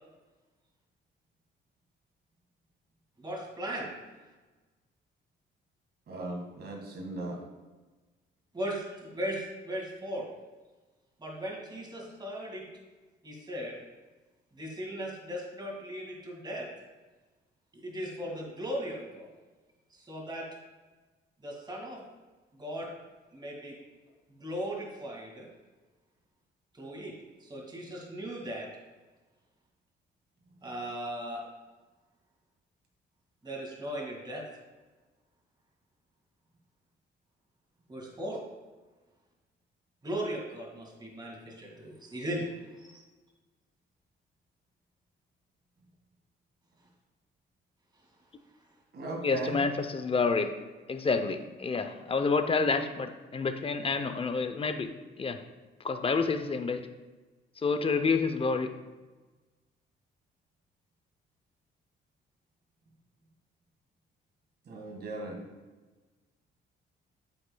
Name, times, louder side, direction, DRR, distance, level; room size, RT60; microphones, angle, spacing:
voice 1, 3.2-3.9 8.5-10.3 11.2-12.6 13.2-13.8 14.5-16.7 17.7-19.3 19.9-20.4 21.4-22.0 22.5-22.9 23.3-23.8 24.3-25.5 26.7-27.1 27.4-28.7 30.6-31.4 33.4-34.4 37.9-38.4 40.0-42.5 42.8-43.0, equal, 20° right, -1 dB, 2.1 m, -37 dB
voice 2, 6.1-7.4 48.9-49.6 64.7-65.4, right 2 dB, 55° right, 1 dB, 1.8 m, -37 dB
voice 3, 49.2-50.5 50.9-54.9 55.2-55.4 55.8-56.8 57.6-58.7, left 4 dB, 30° left, 9 dB, 0.6 m, -28 dB
8.5 x 7.8 x 2.3 m, 1.3 s
cardioid pair, 90°, 20 cm